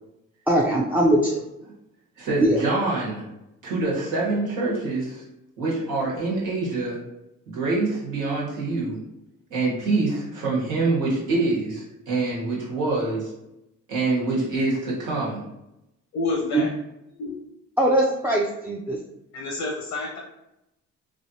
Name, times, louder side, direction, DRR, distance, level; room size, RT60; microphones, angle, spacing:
voice 1, 0.5-1.4 2.4-2.6 16.5-16.6 17.8-19.0, right 1 dB, 5° right, -3 dB, 0.3 m, -21 dB
voice 2, 2.2-3.2 3.6-5.2 5.6-7.0 7.5-9.0 9.5-13.3 13.9-15.4, right 3 dB, 90° right, -5 dB, 1.4 m, -25 dB
voice 3, 16.1-16.7 17.1-17.4 19.3-20.2, left 3 dB, 85° left, -1 dB, 0.7 m, -29 dB
3.1 x 2.5 x 2.8 m, 0.88 s
cardioid pair, 90°, 30 cm